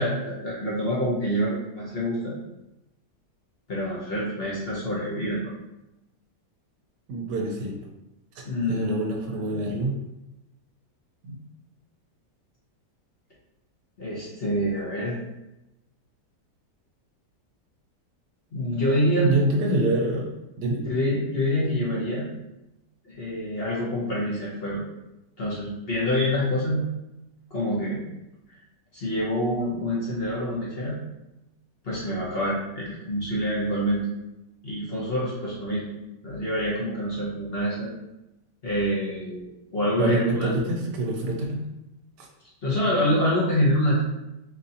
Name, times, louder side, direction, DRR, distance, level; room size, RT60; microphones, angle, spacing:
voice 1, 0.0-2.3 3.7-5.5 8.4-9.6 14.0-15.2 18.5-19.3 20.8-22.3 23.0-24.8 25.4-26.8 27.5-28.0 28.9-31.0 31.8-34.1 34.6-35.8 36.2-37.9 38.6-40.5 42.6-44.0, equal, 45° left, -6 dB, 0.8 m, -26 dB
voice 2, 7.1-7.8 8.7-10.0 11.2-11.3 19.2-20.8 39.9-41.7 42.2-42.3, right 2 dB, 90° right, 2 dB, 1.3 m, -26 dB
4.0 x 2.6 x 2.7 m, 0.95 s
omnidirectional pair, 1.8 m